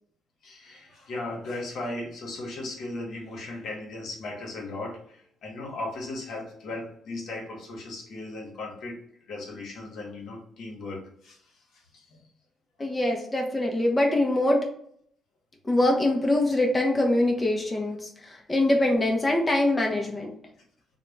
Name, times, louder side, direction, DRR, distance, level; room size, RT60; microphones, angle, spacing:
voice 1, 0.4-9.0 9.3-12.2, left 2 dB, 70° left, 0 dB, 0.8 m, -37 dB
voice 2, 12.8-14.6 15.6-20.3, left 1 dB, 20° left, 1 dB, 0.4 m, -24 dB
2.3 x 2.1 x 3.1 m, 0.67 s
cardioid pair, 90°, 0 cm